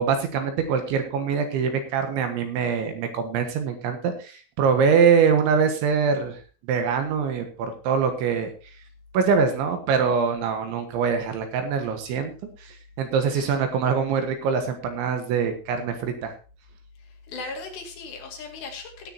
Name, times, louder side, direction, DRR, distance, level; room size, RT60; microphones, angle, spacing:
voice 1, 0.0-6.4 6.7-8.5 9.1-12.3 12.6-16.3, right 6 dB, 70° right, 6 dB, 3.6 m, -23 dB
voice 2, 17.3-19.1, left 3 dB, 60° left, 2 dB, 4.0 m, -37 dB
19.0 x 9.3 x 2.9 m, 0.35 s
omnidirectional pair, 5.9 m